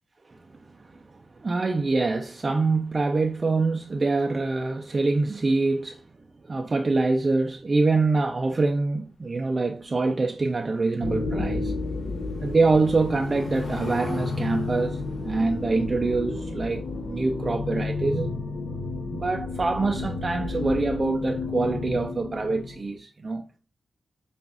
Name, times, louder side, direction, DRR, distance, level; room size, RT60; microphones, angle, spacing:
voice 1, 0.3-6.0 6.4-11.7 12.4-18.3 19.1-23.4, right 3 dB, 35° right, 0.5 m, -25 dB
Car passing by / Engine, 10.6-17.5 17.8-18.1 18.4-18.5, left 2 dB, 40° left, 1.8 m, -46 dB
sound 1, 11.0-23.0, left 3 dB, 80° left, 1.2 m, -31 dB
7.1 x 2.5 x 2.4 m
wide cardioid pair, 105°, 0 cm